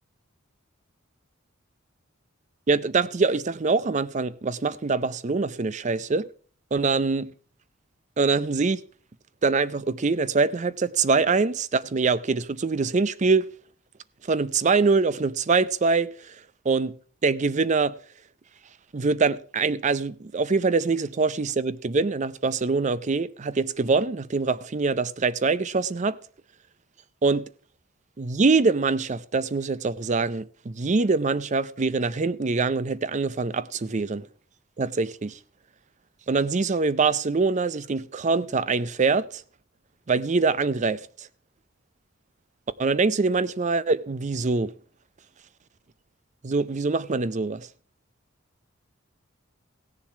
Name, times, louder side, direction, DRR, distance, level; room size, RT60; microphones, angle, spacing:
voice 1, 2.7-6.3 6.7-7.3 8.2-8.8 9.4-13.5 14.3-16.3 16.6-16.9 17.2-18.0 18.9-26.2 27.2-27.5 28.2-34.2 34.8-35.4 36.3-39.4 40.1-41.3 42.8-44.7 46.4-47.7, right 4 dB, 35° right, 0.5 m, -24 dB
16.0 x 7.2 x 4.6 m
head